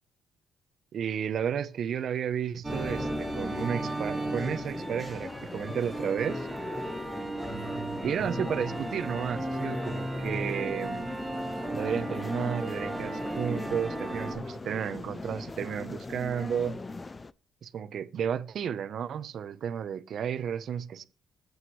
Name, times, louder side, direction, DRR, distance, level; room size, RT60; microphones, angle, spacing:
voice 1, 0.9-6.5 8.0-11.1 11.7-16.8 17.6-21.1, right 8 dB, 60° right, 1.0 m, -32 dB
sound 1, 2.6-14.4, right 2 dB, 10° right, 4.3 m, -35 dB
sound 2, 2.7-17.3, left 3 dB, 25° left, 0.6 m, -39 dB
20.0 x 8.1 x 3.3 m
cardioid pair, 90°, 0 cm